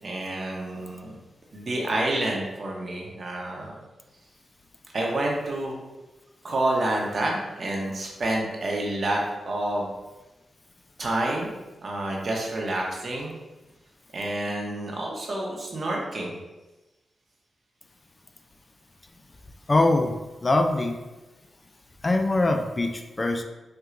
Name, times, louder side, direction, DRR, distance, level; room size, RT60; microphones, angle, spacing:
voice 1, 0.0-1.2 1.5-3.7 4.9-5.8 6.4-9.9 11.0-11.5 11.8-13.3 14.1-16.3, right 1 dB, 55° right, -1 dB, 0.9 m, -28 dB
voice 2, 19.7-21.0 22.0-23.4, left 2 dB, 35° left, 5 dB, 0.3 m, -23 dB
4.4 x 2.3 x 2.5 m, 1.1 s
cardioid pair, 50°, 0 cm